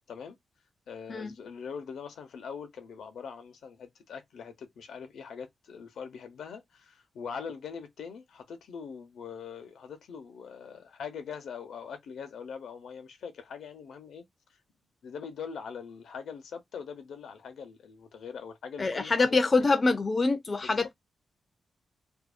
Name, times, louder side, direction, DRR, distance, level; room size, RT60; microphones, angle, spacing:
voice 1, 0.9-14.6 15.0-19.8 20.6-20.9, left 6 dB, 85° left, 0.7 m, -42 dB
voice 2, 18.8-20.9, left 3 dB, 30° left, 0.4 m, -25 dB
2.6 x 2.0 x 2.3 m
wide cardioid pair, 125°, 0 cm